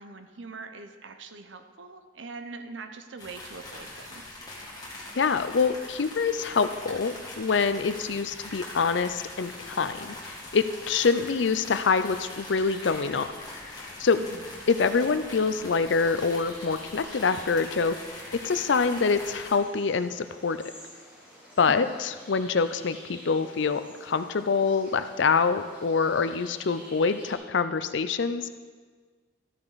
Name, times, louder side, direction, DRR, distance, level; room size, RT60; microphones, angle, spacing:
voice 1, 0.0-4.4 14.2-14.4 21.6-21.9, right 4 dB, 75° right, 8 dB, 0.8 m, -43 dB
sound 1, 3.2-19.6, left 2 dB, 20° left, 2.1 m, -42 dB
voice 2, 5.1-13.3 13.7-14.2 14.7-18.0 18.4-20.6 21.6-28.5, left 5 dB, 70° left, 11 dB, 0.5 m, -25 dB
sound 2, 9.4-27.3, equal, 10° right, 3.3 m, -51 dB
13.5 x 8.7 x 4.1 m, 1.5 s
head